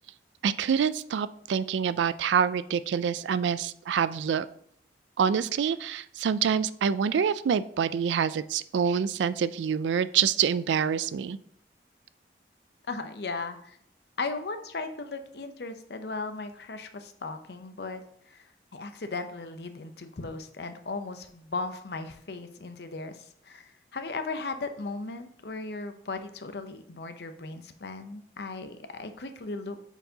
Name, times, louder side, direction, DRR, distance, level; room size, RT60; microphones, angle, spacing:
voice 1, 0.4-4.5 5.2-11.4, right 7 dB, 90° right, 15 dB, 0.3 m, -26 dB
voice 2, 12.9-13.8 14.2-18.0 18.3-18.4 18.7-29.7, left 3 dB, 65° left, 8 dB, 0.7 m, -37 dB
8.9 x 4.6 x 2.8 m, 0.66 s
head